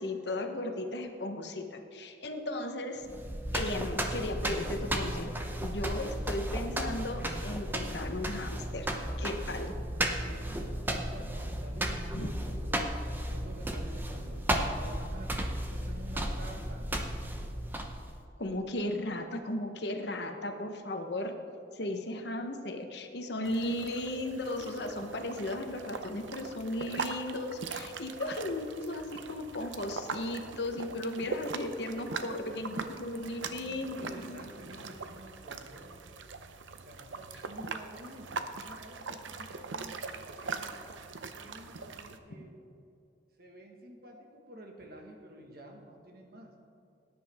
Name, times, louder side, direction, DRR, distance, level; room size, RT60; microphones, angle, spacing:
voice 1, 0.0-3.1 3.5-5.3 5.6-8.9 9.2-9.7 12.1-12.6 18.4-21.3 21.7-34.4, left 1 dB, 65° left, 5 dB, 1.1 m, -36 dB
sound 1, 3.0-18.2, right 1 dB, 10° right, 0.8 m, -34 dB
voice 2, 10.2-10.5 11.0-16.9 32.0-32.4 33.4-36.2 36.8-40.8 41.2-42.6 43.4-46.5, right 1 dB, 55° right, 1 dB, 1.7 m, -50 dB
sound 2, 23.4-42.2, right 4 dB, 90° right, 0.7 m, -42 dB
18.5 x 10.0 x 3.6 m, 2.7 s
head